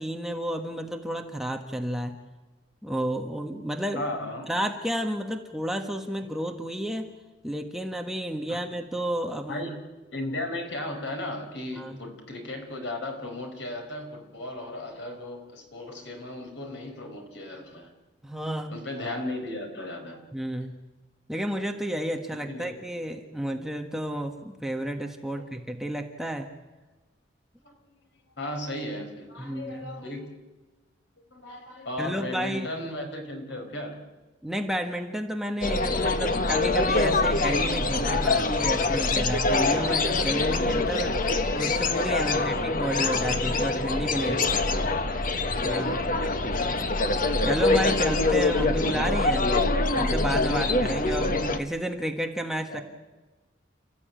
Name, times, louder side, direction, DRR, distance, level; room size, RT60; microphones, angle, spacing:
voice 1, 0.0-2.2 2.8-4.1 4.5-7.1 7.4-9.6 11.8-12.0 18.2-18.8 20.3-20.8 21.3-26.5 29.4-29.9 32.0-32.7 34.4-41.2 41.5-44.3 45.6-46.1 47.4-49.6 49.9-52.8, right 1 dB, ahead, 3 dB, 1.4 m, -31 dB
voice 2, 3.9-4.5 8.5-8.6 9.5-9.8 10.1-17.9 18.7-20.3 22.3-22.8 25.3-25.4 27.6-28.0 28.4-30.4 31.3-34.1 42.1-43.3 44.2-44.8 46.5-46.8 47.7-48.0 52.7-52.8, left 1 dB, 70° left, 4 dB, 4.8 m, -36 dB
sound 1, 35.6-51.6, left 2 dB, 45° left, 1.3 m, -25 dB
29.5 x 14.5 x 9.1 m, 1.2 s
head